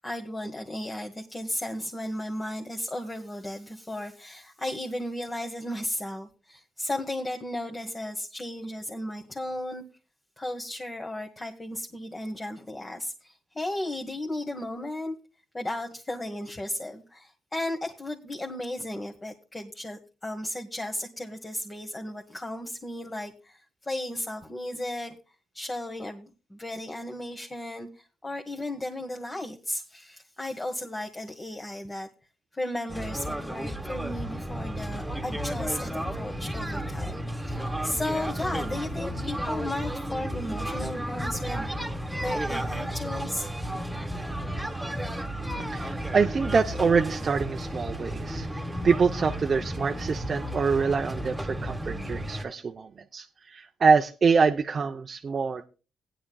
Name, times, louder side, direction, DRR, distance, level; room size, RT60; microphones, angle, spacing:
voice 1, 0.0-9.8 10.4-15.1 15.5-25.1 25.5-32.1 32.5-41.6 42.2-43.9, left 1 dB, 20° left, 3 dB, 1.4 m, -35 dB
sound 1, 32.9-52.4, equal, 5° right, 1.8 m, -33 dB
voice 2, 45.6-55.7, right 5 dB, 45° right, 4 dB, 0.7 m, -25 dB
18.0 x 10.0 x 2.3 m, 0.34 s
cardioid pair, 90°, 0 cm